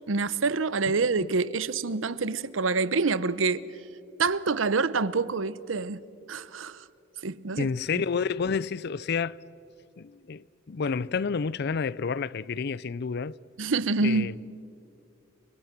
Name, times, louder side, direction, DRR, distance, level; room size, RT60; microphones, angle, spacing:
voice 1, 0.1-3.6 4.2-6.0 6.3-6.8 7.2-7.7 13.6-14.3, right 4 dB, 85° right, 0.8 m, -26 dB
voice 2, 7.6-9.4 10.0-13.4 14.0-14.3, left 5 dB, 55° left, 0.5 m, -30 dB
30.0 x 24.0 x 6.0 m
head